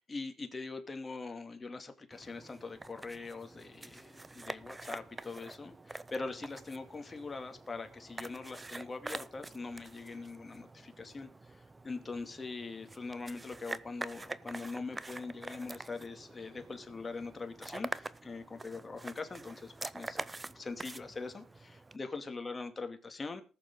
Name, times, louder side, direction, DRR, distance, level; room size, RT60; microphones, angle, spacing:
voice 1, 0.1-20.2 20.5-23.4, left 3 dB, 25° left, 6 dB, 2.2 m, -42 dB
sound 1, 2.1-22.0, right 2 dB, 20° right, 0.6 m, -46 dB
20.0 x 6.9 x 3.7 m, 0.36 s
cardioid pair, 90°, 0 cm